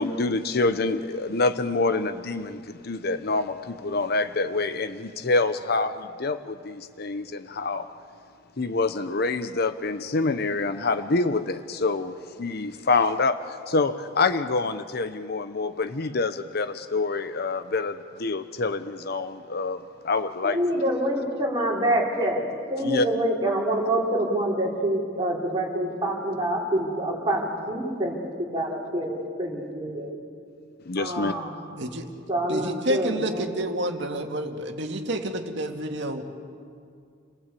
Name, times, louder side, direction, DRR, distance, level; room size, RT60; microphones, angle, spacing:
voice 1, 0.0-7.9 8.6-19.8 20.0-20.8 22.8-23.1 30.9-31.4, left 3 dB, 50° left, 10 dB, 0.8 m, -26 dB
voice 2, 20.4-22.4 22.7-28.2 28.5-30.1 31.0-31.6 32.3-33.5, right 1 dB, 20° right, -3 dB, 4.8 m, -26 dB
voice 3, 32.5-36.2, right 1 dB, 60° right, 4 dB, 2.2 m, -29 dB
29.5 x 18.5 x 8.4 m, 2.3 s
head